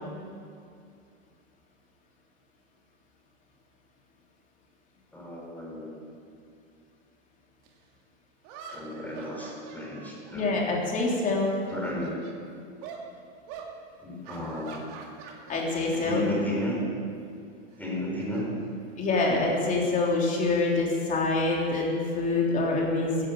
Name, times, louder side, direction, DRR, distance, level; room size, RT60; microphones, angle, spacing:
voice 1, 5.1-5.9 8.7-10.5 11.7-12.5 14.0-14.9 15.9-16.8 17.8-18.5, left 1 dB, 5° left, -3 dB, 4.2 m, -34 dB
sound 1, 7.6-7.7 8.4-11.1 11.4-12.4 12.8-13.1 13.5-13.7 14.2-16.0 16.3-16.5 17.7-19.2, right 6 dB, 45° right, 2.4 m, -45 dB
voice 2, 10.3-11.5 15.5-16.3 19.0-23.3, left 3 dB, 20° left, -2 dB, 3.3 m, -26 dB
14.5 x 10.5 x 8.5 m, 2.4 s
supercardioid pair, 145°, 36 cm